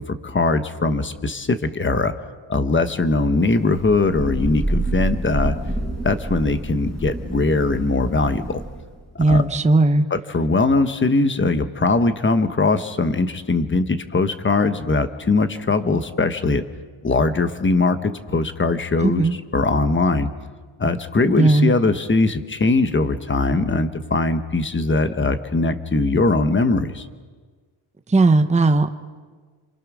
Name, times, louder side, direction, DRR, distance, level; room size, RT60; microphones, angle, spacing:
voice 1, 0.0-2.1 2.5-5.5 6.0-8.6 9.1-9.4 10.1-16.7 17.0-19.3 19.5-20.3 20.8-27.1, left 3 dB, 25° left, 9 dB, 1.1 m, -21 dB
Thunder / Rain, 3.3-9.0, right 2 dB, ahead, 6.0 m, -28 dB
voice 2, 9.2-10.0 19.0-19.4 21.2-21.7 28.1-28.9, right 2 dB, 15° right, 8 dB, 0.8 m, -16 dB
27.5 x 27.5 x 6.2 m, 1.5 s
wide cardioid pair, 180°, 49 cm